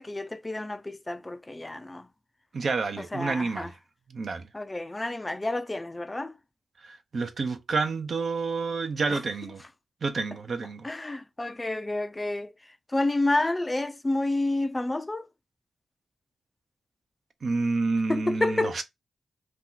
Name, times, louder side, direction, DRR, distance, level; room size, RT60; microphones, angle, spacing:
voice 1, 0.0-2.1 3.0-3.7 4.5-6.3 9.1-9.2 10.8-12.5 12.9-15.3 18.1-18.8, left 2 dB, 20° left, 0.4 m, -29 dB
voice 2, 2.5-3.7 4.1-4.4 6.8-9.6 10.0-10.9 17.4-18.8, right 4 dB, 60° right, 0.6 m, -29 dB
2.8 x 2.3 x 3.8 m
cardioid pair, 70°, 0 cm